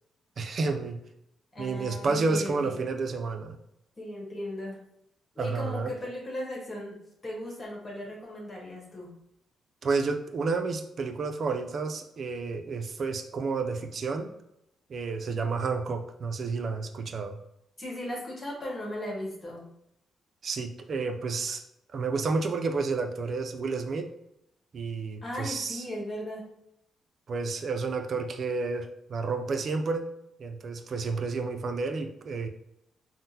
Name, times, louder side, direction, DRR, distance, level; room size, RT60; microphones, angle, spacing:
voice 1, 0.4-1.0 1.6-3.6 5.4-5.9 9.8-14.3 14.9-17.4 20.4-21.6 21.9-24.1 24.7-25.8 27.3-30.1 30.4-32.5, right 4 dB, 55° right, 5 dB, 0.4 m, -30 dB
voice 2, 1.5-2.8 4.0-4.8 5.3-7.0 7.2-9.1 17.8-19.7 25.2-26.5, left 1 dB, 30° left, -3 dB, 1.2 m, -37 dB
3.6 x 2.1 x 2.8 m, 0.80 s
cardioid pair, 70°, 0 cm